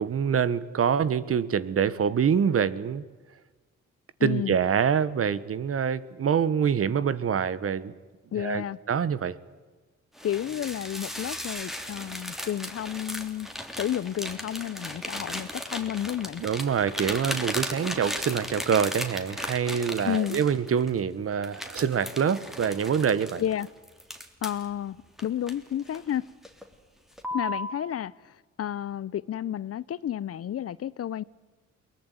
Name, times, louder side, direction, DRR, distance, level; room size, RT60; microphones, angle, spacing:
voice 1, 0.0-3.0 4.2-7.9 8.4-9.4 16.4-23.4, right 7 dB, 50° right, 1.4 m, -25 dB
voice 2, 4.2-4.5 8.3-8.8 10.2-13.5 13.8-16.4 20.0-20.5 23.4-23.7 24.4-26.2 27.3-31.2, left 10 dB, 50° left, 0.7 m, -31 dB
sound 1, 10.2-20.9 21.4-24.7 25.2-26.1 26.4-26.7 27.2-27.7, equal, ahead, 3.2 m, -36 dB
23.0 x 20.0 x 9.4 m
cardioid pair, 90°, 30 cm